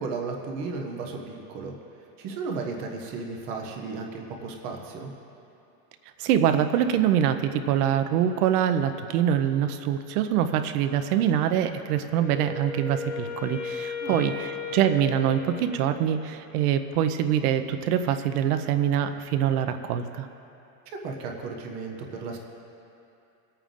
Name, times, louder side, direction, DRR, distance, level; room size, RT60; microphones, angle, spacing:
voice 1, 0.0-5.1 14.0-14.2 20.9-22.4, right 4 dB, 20° right, 2 dB, 0.4 m, -35 dB
voice 2, 6.2-20.3, right 9 dB, 65° right, 9 dB, 0.7 m, -24 dB
Wind instrument woodwind instrument, 12.2-16.1, left 6 dB, 5° left, 0.8 m, -36 dB
23.5 x 8.8 x 2.5 m, 2.7 s
supercardioid pair, 160°, 49 cm